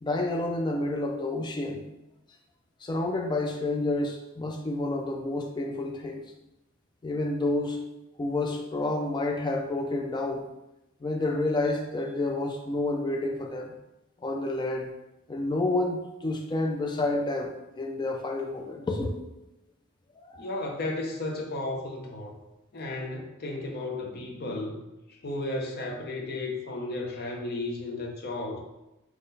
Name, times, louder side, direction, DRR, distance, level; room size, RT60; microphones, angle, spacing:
voice 1, 0.0-1.9 2.8-6.3 7.0-7.8 8.2-10.5 11.0-13.7 14.2-14.9 15.3-19.2 20.2-20.5, left 2 dB, 20° left, 3 dB, 0.3 m, -29 dB
voice 2, 20.4-22.3 22.7-24.8 25.2-28.6, left 2 dB, 50° left, 1 dB, 0.7 m, -34 dB
3.8 x 3.0 x 4.0 m, 0.94 s
head